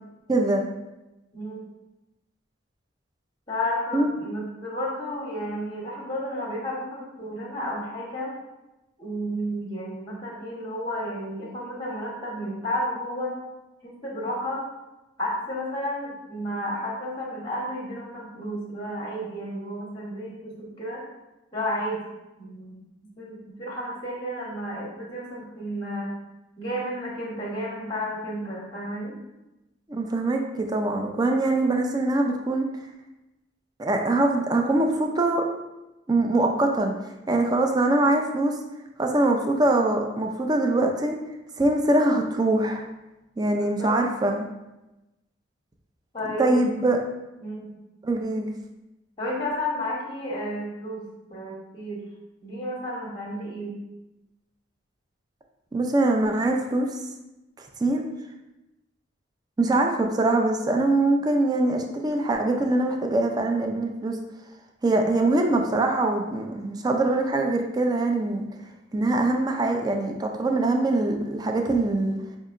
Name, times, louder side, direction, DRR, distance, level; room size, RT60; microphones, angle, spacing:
voice 1, 0.3-0.6 3.9-4.1 29.9-32.7 33.8-35.4 36.1-36.9 37.3-38.5 39.0-41.2 41.6-42.8 43.4-44.5 46.4-47.0 48.0-48.5 55.7-56.9 57.8-58.0 59.6-64.2 64.8-68.5 68.9-72.1, right 2 dB, 20° right, 3 dB, 0.3 m, -23 dB
voice 2, 1.3-1.7 3.5-8.3 9.0-13.4 13.8-14.7 15.2-21.0 21.5-22.0 22.4-22.8 23.2-26.1 26.6-29.2 43.5-44.0 46.1-46.6 47.4-47.7 49.2-51.0 51.3-52.0 52.4-53.7, equal, 25° left, -3 dB, 0.8 m, -32 dB
5.4 x 2.7 x 2.4 m, 0.98 s
head